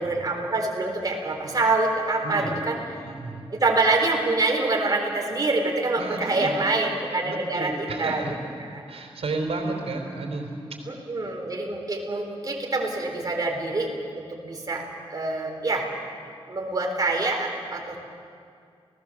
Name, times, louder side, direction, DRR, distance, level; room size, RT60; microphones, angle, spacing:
voice 1, 0.0-2.8 3.5-7.7 8.0-8.2 8.7-8.8 10.9-14.8 15.1-15.9 16.5-18.0, right 2 dB, 40° right, 1 dB, 4.1 m, -25 dB
voice 2, 2.2-2.7 3.0-3.5 6.0-6.6 7.2-8.4 8.9-10.5, right 3 dB, 80° right, 3 dB, 3.9 m, -31 dB
29.5 x 18.0 x 7.6 m, 2.3 s
wide cardioid pair, 135°, 10 cm